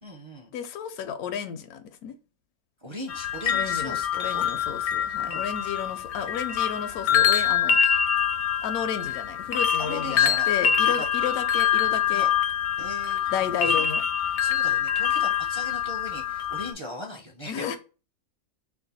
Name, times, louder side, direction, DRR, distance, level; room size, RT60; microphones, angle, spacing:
voice 1, 0.0-0.5 2.8-4.1 4.3-4.4 5.3-5.5 9.8-10.5 10.8-11.1 12.1-12.3 12.8-13.8 14.4-17.8, left 1 dB, 35° right, 0.4 m, -39 dB
voice 2, 0.5-2.2 3.5-7.8 8.6-12.3 13.3-14.0 17.5-17.8, left 8 dB, 85° left, 1.1 m, -32 dB
sound 1, 3.1-16.7, left 8 dB, 65° left, 0.7 m, -25 dB
4.5 x 2.2 x 4.0 m
omnidirectional pair, 1.5 m